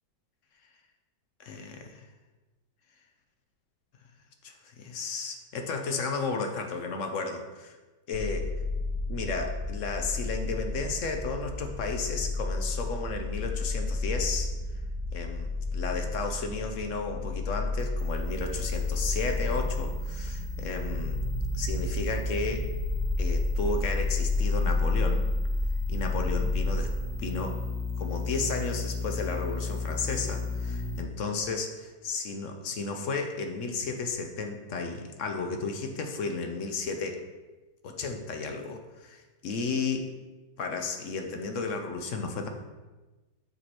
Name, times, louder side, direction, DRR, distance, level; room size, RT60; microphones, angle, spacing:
voice 1, 1.4-2.0 4.4-7.8 8.1-8.4 9.1-14.5 15.1-21.2 21.5-22.7 23.2-25.3 25.9-27.6 28.0-37.2 37.8-40.1 40.6-42.5, left 4 dB, 60° left, 5 dB, 0.8 m, -33 dB
sound 1, 8.1-26.8, left 2 dB, 85° right, 1.5 m, -30 dB
sound 2, 17.8-31.0, left 3 dB, 50° right, 0.9 m, -39 dB
6.8 x 4.7 x 4.3 m, 1.2 s
omnidirectional pair, 1.9 m